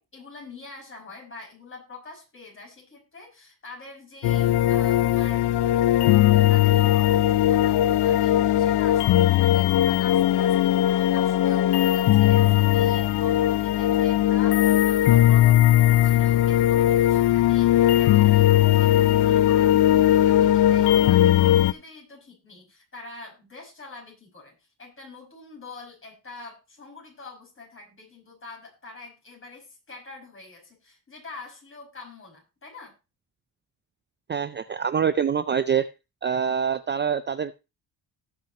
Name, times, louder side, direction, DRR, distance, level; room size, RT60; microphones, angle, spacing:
voice 1, 0.0-5.4 6.4-32.9, left 3 dB, 30° left, 0 dB, 5.8 m, -45 dB
sound 1, 4.2-21.7, left 13 dB, 90° left, 0.5 m, -19 dB
voice 2, 34.3-35.9 36.2-37.6, right 7 dB, 30° right, 13 dB, 0.4 m, -25 dB
18.0 x 6.1 x 2.9 m, 0.28 s
cardioid pair, 120°, 39 cm